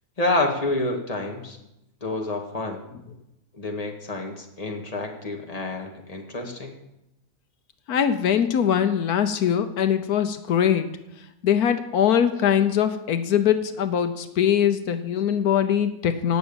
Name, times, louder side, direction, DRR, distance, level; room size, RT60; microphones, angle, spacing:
voice 1, 0.2-1.6 2.0-2.8 3.5-6.7, left 2 dB, 25° left, 2 dB, 2.0 m, -28 dB
voice 2, 7.9-10.9 11.4-16.4, left 9 dB, 85° left, 9 dB, 1.4 m, -22 dB
17.0 x 6.4 x 8.9 m, 0.90 s
omnidirectional pair, 1.6 m